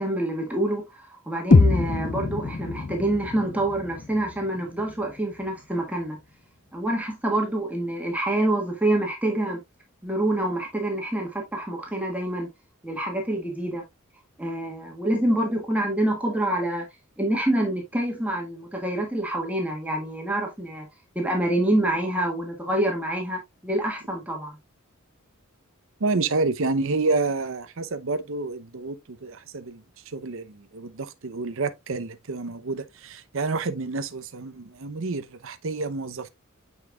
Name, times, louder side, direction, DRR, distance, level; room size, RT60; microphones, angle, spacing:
voice 1, 0.0-6.2 6.7-9.6 10.0-12.5 12.8-13.8 14.4-16.9 17.2-20.9 21.2-24.6, right 1 dB, 5° right, 1.7 m, -26 dB
sound 1, 1.5-5.5, left 3 dB, 40° left, 0.4 m, -24 dB
voice 2, 26.0-36.3, right 3 dB, 65° right, 0.7 m, -29 dB
7.9 x 5.4 x 2.3 m
head